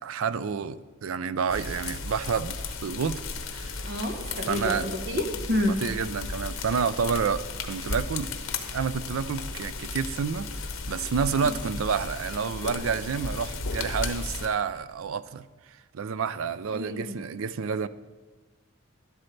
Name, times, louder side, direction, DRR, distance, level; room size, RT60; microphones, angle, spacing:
voice 1, 0.0-3.2 3.5-3.8 4.4-4.9 5.6-8.3 8.7-15.4 15.9-17.9, right 6 dB, 75° right, 15 dB, 0.4 m, -29 dB
sound 1, 1.5-14.5, left 4 dB, 70° left, 1.1 m, -35 dB
voice 2, 3.8-5.8 11.4-11.6 16.7-17.2, left 1 dB, 50° right, 4 dB, 1.1 m, -29 dB
12.5 x 11.5 x 3.2 m, 1.3 s
head